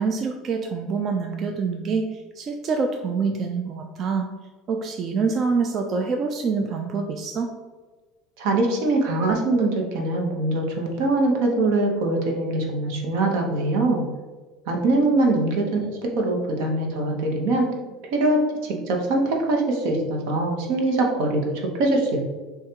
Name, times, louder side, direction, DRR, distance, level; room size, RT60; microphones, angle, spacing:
voice 1, 0.0-4.3 4.7-7.5, right 4 dB, 35° right, 4 dB, 0.3 m, -26 dB
voice 2, 8.4-14.0 14.7-17.7 18.1-22.2, right 2 dB, 75° right, 1 dB, 0.9 m, -23 dB
6.4 x 2.4 x 2.9 m, 1.3 s
cardioid pair, 135°, 0 cm